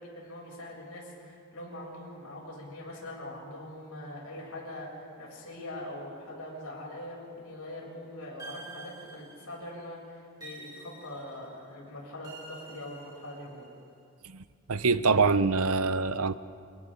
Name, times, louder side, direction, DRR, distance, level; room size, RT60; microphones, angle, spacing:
voice 1, 0.0-13.7, left 1 dB, 90° left, -3 dB, 7.7 m, -42 dB
sound 1, 8.4-9.7 10.4-11.5 12.2-13.8, right 3 dB, 15° right, 3.2 m, -48 dB
voice 2, 14.2-16.3, right 4 dB, 80° right, 13 dB, 0.8 m, -25 dB
29.5 x 29.0 x 3.9 m, 2.3 s
head